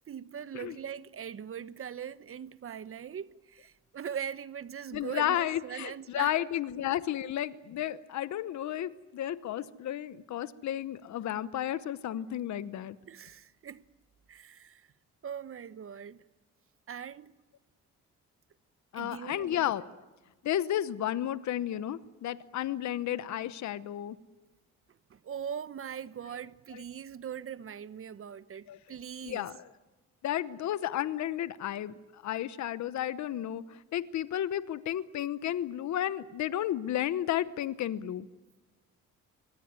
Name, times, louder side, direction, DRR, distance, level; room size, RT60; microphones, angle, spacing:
voice 1, 0.1-6.4 6.8-6.9 13.1-13.8 14.3-14.9 15.2-16.2 16.9-17.3 18.9-19.7 25.1-29.5, right 8 dB, 45° right, 1.1 m, -41 dB
voice 2, 4.9-13.0 18.9-19.9 20.4-24.2 26.7-26.8 28.7-28.8 29.2-29.6 30.2-38.3, left 11 dB, 65° left, 1.0 m, -32 dB
24.5 x 19.0 x 9.5 m
cardioid pair, 90°, 30 cm